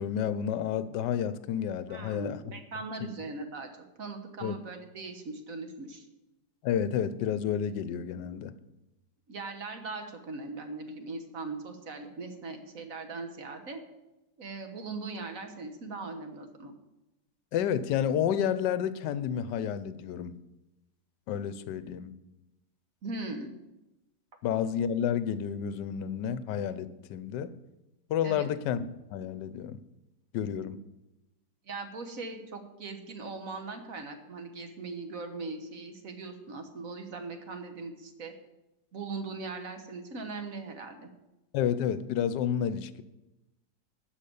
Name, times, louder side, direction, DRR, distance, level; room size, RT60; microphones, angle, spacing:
voice 1, 0.0-2.4 4.4-4.6 6.6-8.5 17.5-20.4 21.3-22.1 24.4-27.5 28.1-28.9 29.1-29.8 30.3-30.8 41.5-43.0, left 9 dB, 75° left, 14 dB, 1.2 m, -30 dB
voice 2, 1.9-3.7 4.0-6.1 9.3-13.8 14.4-16.7 23.0-23.5 28.2-28.5 31.6-38.3 38.9-41.1, right 3 dB, 50° right, 6 dB, 1.4 m, -40 dB
12.0 x 5.4 x 8.5 m, 0.97 s
omnidirectional pair, 2.0 m